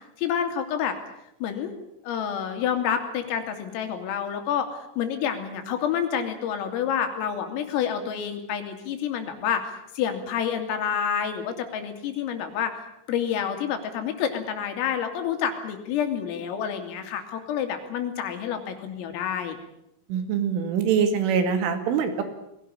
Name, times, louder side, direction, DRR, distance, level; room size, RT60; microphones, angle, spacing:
voice 1, 0.2-1.0 1.4-1.7 2.0-12.8 13.1-19.6, left 8 dB, 80° left, 6 dB, 5.2 m, -28 dB
voice 2, 20.1-22.2, right 7 dB, 70° right, 8 dB, 4.5 m, -24 dB
21.5 x 17.5 x 9.9 m, 0.80 s
omnidirectional pair, 5.9 m